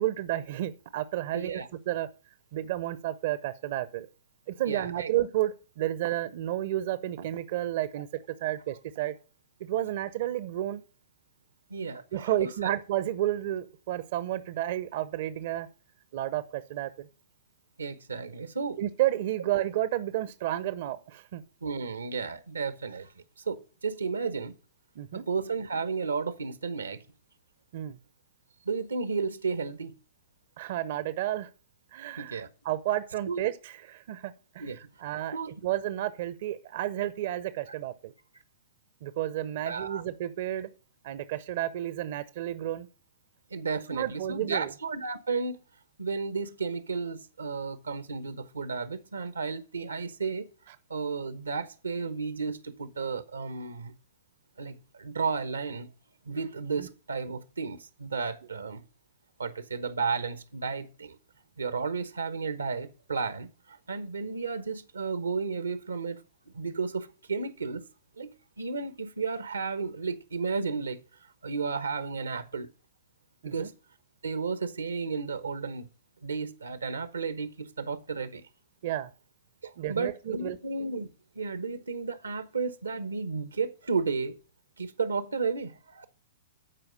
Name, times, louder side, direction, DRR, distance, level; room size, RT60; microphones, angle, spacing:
voice 1, 0.0-2.1 2.5-4.1 4.5-8.1 8.4-9.1 9.6-10.8 12.1-15.7 16.1-17.1 18.8-21.4 25.0-25.2 27.7-28.0 30.6-31.5 31.9-35.4 35.6-38.1 39.0-40.7 41.0-42.9 43.9-44.7 56.8-56.9 73.4-73.7 78.8-79.1 79.8-80.6, right 13 dB, 50° right, 0.7 m, -31 dB
voice 2, 1.3-1.7 4.7-5.1 8.4-8.5 11.7-12.7 17.8-18.8 21.6-23.1 23.5-24.5 25.1-27.0 28.6-30.0 32.2-32.5 33.3-33.4 34.6-34.8 35.3-35.5 39.7-40.0 43.5-45.6 46.0-50.5 50.9-53.9 54.6-55.9 56.3-58.8 59.4-61.2 61.6-67.8 68.2-71.0 71.4-72.7 73.4-73.7 74.2-75.9 76.2-78.4 79.6-81.1 81.3-84.4 84.8-86.1, right 4 dB, 80° right, 1.0 m, -33 dB
12.0 x 4.8 x 6.4 m
figure-of-eight pair, 110°, 0 cm